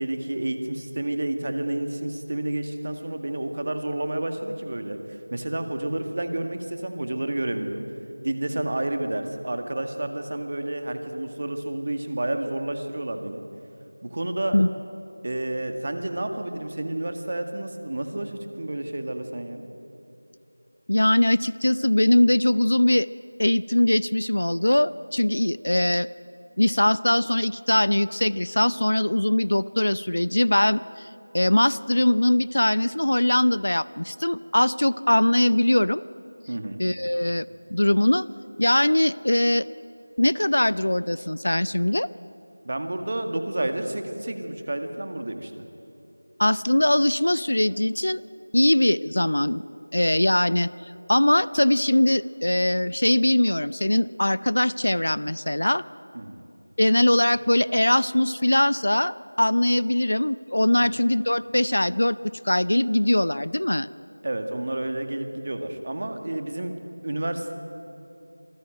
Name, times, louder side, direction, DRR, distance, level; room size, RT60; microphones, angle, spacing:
voice 1, 0.0-7.9 8.2-13.4 14.0-14.6 15.2-19.7 36.5-36.8 42.6-45.6 56.1-56.4 60.8-60.9 64.2-66.7 67.0-67.5, right 1 dB, 35° right, 6 dB, 1.9 m, -30 dB
voice 2, 20.9-23.1 23.4-26.1 26.6-31.1 31.3-36.0 36.8-37.4 37.7-38.3 38.6-39.7 40.2-42.1 46.4-48.2 48.5-49.6 49.9-50.7 51.1-55.8 56.8-63.9, left 1 dB, 65° left, 18 dB, 0.6 m, -21 dB
26.5 x 19.0 x 9.1 m, 2.9 s
figure-of-eight pair, 175°, 0 cm